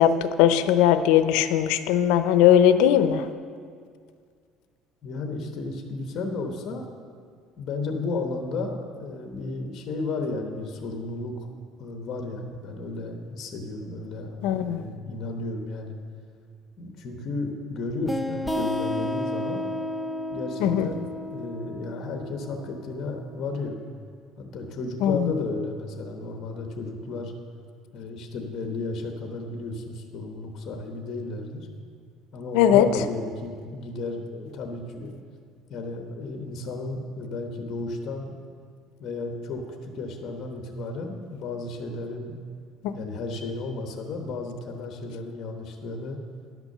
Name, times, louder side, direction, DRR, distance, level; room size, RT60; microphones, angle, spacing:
voice 1, 0.0-3.3 14.4-14.9 20.6-20.9 25.0-25.3 32.5-32.9, left 10 dB, 80° left, 11 dB, 0.5 m, -19 dB
voice 2, 5.0-6.8 7.6-11.5 11.8-15.9 16.8-19.6 20.3-23.8 24.4-27.3 27.9-31.7 32.3-35.1 35.7-38.3 39.0-42.4 42.9-46.2, left 3 dB, 40° left, 4 dB, 1.1 m, -33 dB
sound 1, 18.1-23.4, left 1 dB, ahead, 0.4 m, -32 dB
11.0 x 6.0 x 6.6 m, 2.1 s
cardioid pair, 145°, 0 cm